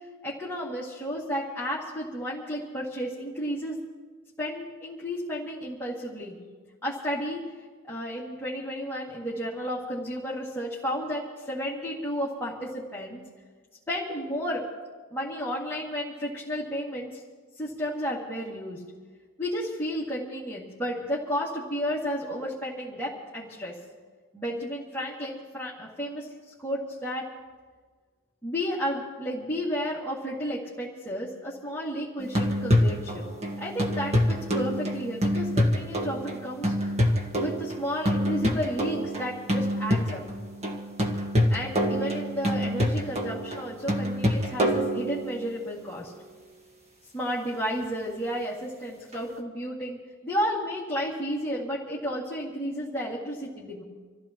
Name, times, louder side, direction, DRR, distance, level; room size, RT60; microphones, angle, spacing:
voice 1, 0.2-3.8 4.4-6.4 6.8-7.4 7.9-13.2 13.9-14.6 15.1-17.2 17.6-18.8 19.4-23.7 24.3-27.3 28.4-33.2 33.5-36.9 37.4-40.2 41.5-46.1 47.1-50.0 50.2-53.8, equal, 10° left, -7 dB, 2.3 m, -32 dB
sound 1, 32.2-45.6 49.1-49.2, equal, 30° right, 1.7 m, -26 dB
27.5 x 15.0 x 3.0 m, 1.5 s
head